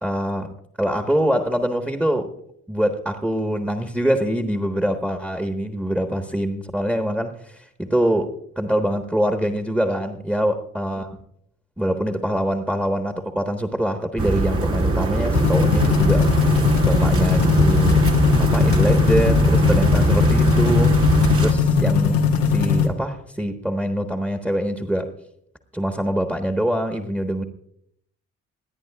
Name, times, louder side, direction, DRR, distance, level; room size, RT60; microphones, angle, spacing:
voice 1, 0.0-2.3 2.7-11.1 11.8-18.1 18.4-21.0 21.4-25.1 25.7-27.4, equal, 5° right, 1.4 m, -24 dB
sound 1, 14.2-21.5, right 2 dB, 35° right, 1.8 m, -21 dB
sound 2, 15.3-22.9, left 5 dB, 85° left, 1.3 m, -19 dB
29.0 x 10.5 x 2.4 m
figure-of-eight pair, 40°, 37 cm